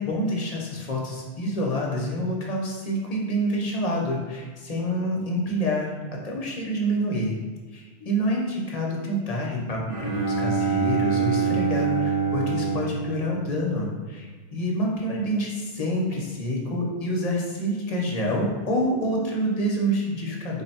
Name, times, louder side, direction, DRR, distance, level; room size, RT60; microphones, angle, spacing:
voice 1, 0.0-7.4 7.7-20.6, equal, 45° left, -2 dB, 0.7 m, -27 dB
Bowed string instrument, 9.9-14.2, right 5 dB, 40° right, 0.6 m, -26 dB
3.5 x 2.2 x 4.2 m, 1.4 s
omnidirectional pair, 1.1 m